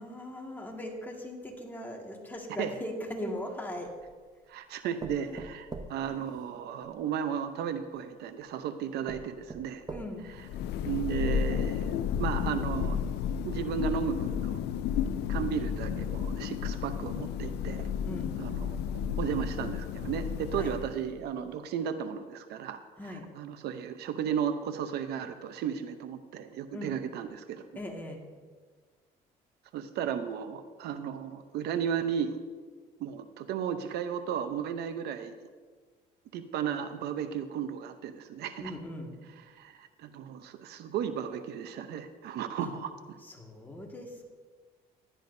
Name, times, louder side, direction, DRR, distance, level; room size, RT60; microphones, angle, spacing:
voice 1, 0.0-3.9 5.0-5.4 9.9-10.3 18.0-18.4 20.6-20.7 23.0-23.3 26.7-26.9 27.7-28.2 38.6-39.1 42.6-42.7 43.2-44.3, left 1 dB, 10° left, 0 dB, 1.8 m, -39 dB
sound 1, 3.3-4.2 5.0-7.0 7.9-8.0 8.6-8.7 9.1-10.4 10.9-11.0 11.3-11.4, right 3 dB, 20° right, 0.9 m, -44 dB
voice 2, 4.5-9.8 10.8-13.0 13.4-14.5 15.3-17.9 18.4-22.8 23.1-27.6 29.7-32.4 33.0-35.3 36.3-38.7 39.5-43.2, right 8 dB, 75° right, 10 dB, 0.7 m, -34 dB
Thunder, 10.2-21.2, left 8 dB, 75° left, 0.5 m, -32 dB
15.5 x 11.0 x 2.7 m, 1.5 s
cardioid pair, 110°, 17 cm